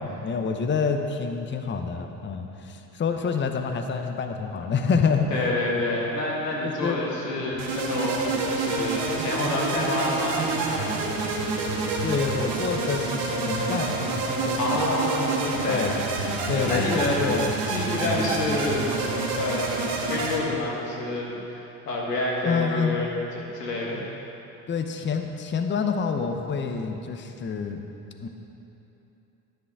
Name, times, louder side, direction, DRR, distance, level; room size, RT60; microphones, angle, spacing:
voice 1, 0.0-5.4 5.7-5.8 6.6-7.0 12.0-14.9 15.5-15.9 16.5-17.5 18.0-18.2 22.4-23.0 24.7-27.8 28.2-28.3, left 5 dB, 25° left, 5 dB, 0.8 m, -27 dB
voice 2, 5.3-11.0 14.6-15.8 16.5-17.2 17.7-18.9 19.3-19.7 20.0-23.1 23.5-24.0, left 2 dB, 85° left, -3 dB, 1.8 m, -28 dB
sound 1, 7.6-20.4, right 3 dB, 65° right, 1.7 m, -28 dB
11.0 x 10.0 x 4.7 m, 3.0 s
figure-of-eight pair, 55°, 47 cm